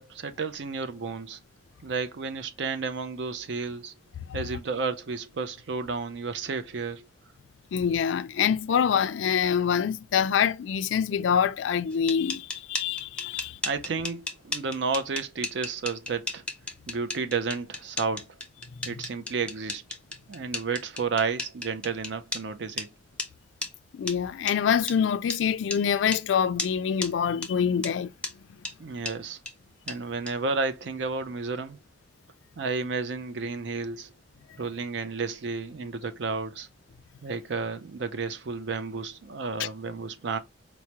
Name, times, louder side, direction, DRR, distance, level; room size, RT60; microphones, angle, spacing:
voice 1, 0.0-1.4 1.8-3.9 4.3-7.1 13.6-16.4 16.9-18.3 18.8-19.8 20.3-22.9 28.8-29.4 29.9-31.8 32.6-34.1 34.6-36.7 37.2-40.4, right 4 dB, 65° right, 0.5 m, -32 dB
voice 2, 7.7-13.6 23.9-28.1 39.6-39.7, left 7 dB, 75° left, 0.3 m, -25 dB
sound 1, 11.9-22.4 22.8-22.9 23.2-23.3 23.6-23.7 24.1-24.2 24.5-24.6 24.9-25.0 25.3-25.4 25.7-25.8 26.1-26.2 26.6-26.7 27.0-27.1 27.4-27.5 27.8-27.9 28.2-28.3 28.6-28.7 29.0-29.1 29.4-29.5 29.9-30.0 30.3-30.4, left 2 dB, 5° left, 0.5 m, -33 dB
4.6 x 2.1 x 2.8 m
head